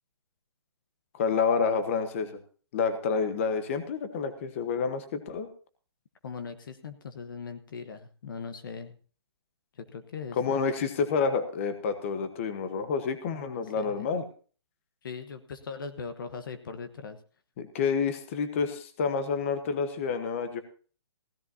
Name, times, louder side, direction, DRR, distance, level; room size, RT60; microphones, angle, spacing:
voice 1, 1.1-2.4 2.7-5.5 10.3-14.2 17.6-20.6, left 5 dB, 30° left, 9 dB, 1.2 m, -29 dB
voice 2, 6.2-8.9 9.9-10.6 13.8-14.1 15.0-17.2, left 5 dB, 50° left, 9 dB, 1.2 m, -40 dB
16.5 x 13.5 x 2.8 m, 0.40 s
hypercardioid pair, 165°, 14 cm